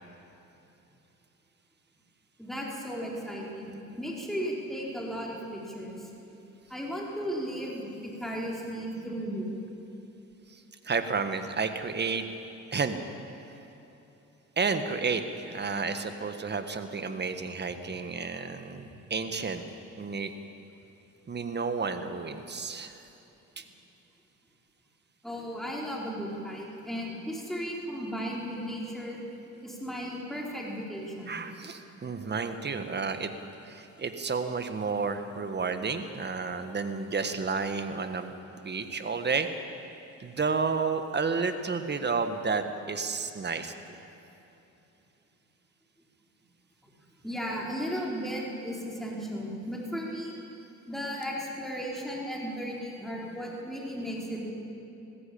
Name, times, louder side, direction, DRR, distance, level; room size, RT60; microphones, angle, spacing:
voice 1, 2.4-6.1 6.7-9.6 18.8-18.9 25.2-29.2 29.6-31.4 47.2-50.3 50.9-54.5, equal, ahead, -3 dB, 4.4 m, -35 dB
voice 2, 10.5-12.2 12.7-13.0 14.6-19.6 20.0-20.3 21.3-23.0 23.6-23.7 31.3-33.3 33.6-39.5 40.2-43.7, right 4 dB, 35° right, 8 dB, 1.6 m, -31 dB
20.5 x 16.0 x 8.6 m, 3.0 s
cardioid pair, 90°, 30 cm